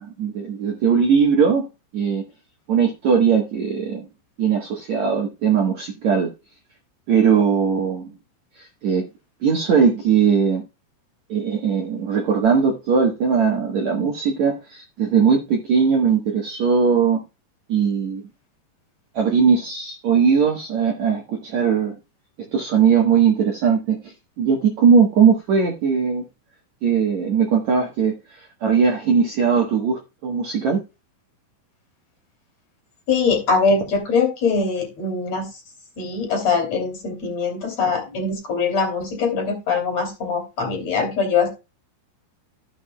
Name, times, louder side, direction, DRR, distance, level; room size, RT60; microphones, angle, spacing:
voice 1, 0.0-2.2 2.7-4.1 4.4-6.3 7.1-8.1 8.6-9.1 9.4-10.6 11.3-17.2 17.7-18.3 19.1-22.0 22.5-26.2 26.8-30.8, right 6 dB, 65° right, 1.8 m, -19 dB
voice 2, 33.1-35.5 36.0-41.5, left 4 dB, 40° left, 3.4 m, -22 dB
15.0 x 7.1 x 2.3 m
omnidirectional pair, 5.0 m